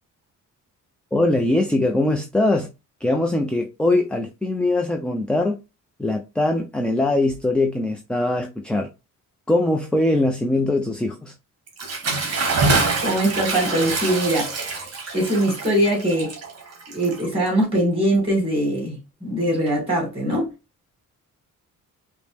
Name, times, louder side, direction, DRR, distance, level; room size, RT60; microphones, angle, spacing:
voice 1, 1.1-2.7 3.0-5.6 6.0-8.9 9.5-11.3, left 2 dB, 5° left, 0.4 m, -21 dB
Bathtub (filling or washing) / Splash splatter, 11.7-17.6, right 3 dB, 50° right, 1.5 m, -25 dB
voice 2, 12.8-16.3 16.9-20.5, right 1 dB, 15° right, 2.4 m, -22 dB
5.1 x 2.1 x 3.3 m
cardioid pair, 150°, 32 cm